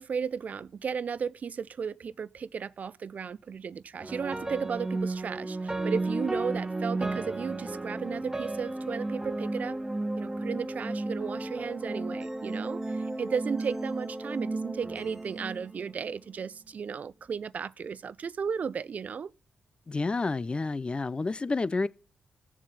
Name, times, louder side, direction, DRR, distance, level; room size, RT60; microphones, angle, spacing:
voice 1, 0.0-9.8 10.2-19.3, right 6 dB, 60° right, 0.6 m, -35 dB
sound 1, 4.0-16.3, right 2 dB, 15° right, 1.3 m, -33 dB
voice 2, 19.9-21.9, left 3 dB, 35° left, 0.7 m, -29 dB
17.0 x 7.3 x 4.1 m
supercardioid pair, 50°, 3 cm